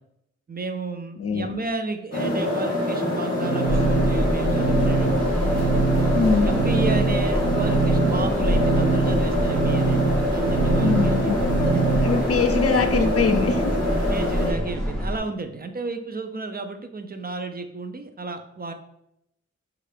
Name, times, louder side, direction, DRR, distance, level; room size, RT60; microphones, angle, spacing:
voice 1, 0.5-5.3 5.7-11.9 14.1-18.7, right 3 dB, 30° right, 7 dB, 0.4 m, -33 dB
voice 2, 1.2-1.6 6.1-6.5 10.8-11.4 12.0-13.7, left 5 dB, 55° left, 7 dB, 0.5 m, -22 dB
sound 1, 2.1-14.5, left 1 dB, 30° left, 1.4 m, -25 dB
sound 2, 3.3-12.2, right 5 dB, 85° right, 0.5 m, -25 dB
sound 3, 3.6-15.2, equal, 5° left, 0.9 m, -27 dB
5.3 x 2.4 x 3.3 m, 0.79 s
wide cardioid pair, 70°, 29 cm